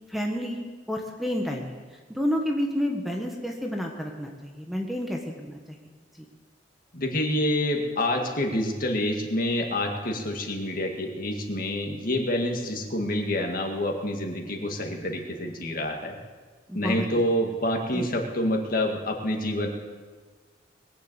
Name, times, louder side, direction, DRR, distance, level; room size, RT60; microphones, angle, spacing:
voice 1, 0.1-0.6 0.9-1.8 2.1-5.8 16.7-17.1 17.9-18.1, equal, ahead, 1 dB, 1.3 m, -30 dB
voice 2, 6.9-16.2 16.7-19.7, left 1 dB, 45° left, 2 dB, 2.0 m, -27 dB
21.0 x 7.6 x 8.2 m, 1.4 s
head